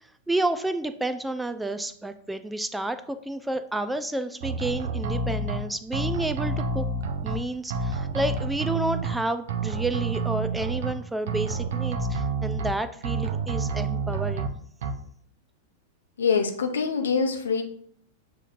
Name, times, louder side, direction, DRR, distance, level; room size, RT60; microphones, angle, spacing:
voice 1, 0.3-6.9 7.2-14.5, right 1 dB, 5° right, 10 dB, 0.3 m, -30 dB
sound 1, 4.4-5.6 5.9-7.4 7.7-9.1 9.5-10.9 11.3-12.7 13.0-14.5 14.8-14.9, right 4 dB, 65° right, 0.5 m, -28 dB
voice 2, 16.2-17.6, left 5 dB, 80° left, 5 dB, 0.6 m, -24 dB
6.8 x 3.0 x 2.4 m, 0.62 s
hypercardioid pair, 100°, 0 cm